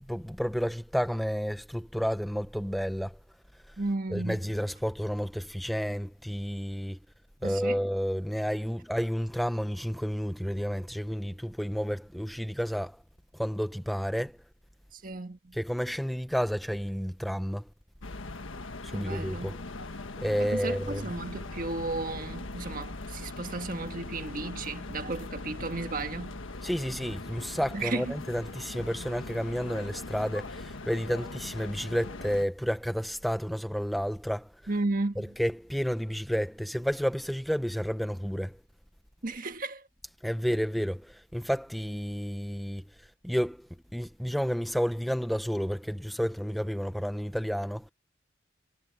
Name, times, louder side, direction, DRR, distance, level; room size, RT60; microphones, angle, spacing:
voice 1, 0.1-3.2 4.1-7.0 7.4-13.0 13.3-14.3 15.5-17.6 18.8-19.6 20.2-21.1 26.6-34.5 35.4-38.6 40.2-42.8 43.2-43.7 43.9-47.9, equal, ahead, 0.5 m, -31 dB
voice 2, 3.8-4.6 7.4-7.9 14.9-15.6 18.9-19.6 20.4-26.4 27.7-28.3 34.7-35.3 39.2-39.9, right 2 dB, 45° right, 1.5 m, -34 dB
sound 1, 18.0-32.5, left 2 dB, 90° left, 1.5 m, -40 dB
head